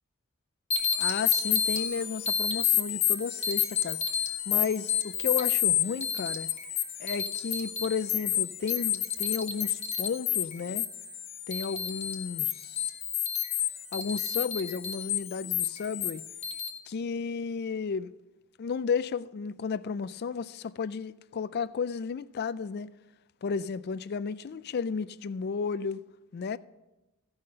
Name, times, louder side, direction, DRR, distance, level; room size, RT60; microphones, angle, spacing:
sound 1, 0.7-16.7, left 9 dB, 30° left, 1.1 m, -30 dB
voice 1, 1.0-4.0 4.5-6.5 7.0-10.9 11.5-12.9 13.9-16.2 16.9-18.1 18.6-22.9 23.4-26.0 26.3-26.6, left 5 dB, 50° left, 0.4 m, -33 dB
14.5 x 5.6 x 6.5 m
head